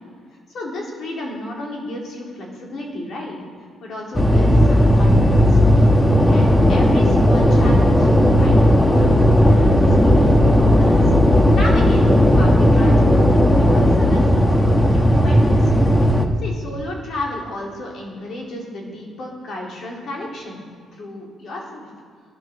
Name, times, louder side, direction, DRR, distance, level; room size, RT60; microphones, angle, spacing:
voice 1, 0.5-3.4 3.8-5.9 6.3-8.1 8.4-15.7 16.4-20.6 20.9-21.9, left 1 dB, 55° left, -2 dB, 3.7 m, -33 dB
sound 1, 4.1-16.3, equal, 10° left, 1.1 m, -14 dB
11.0 x 10.5 x 6.8 m, 2.1 s
cardioid pair, 125°, 0 cm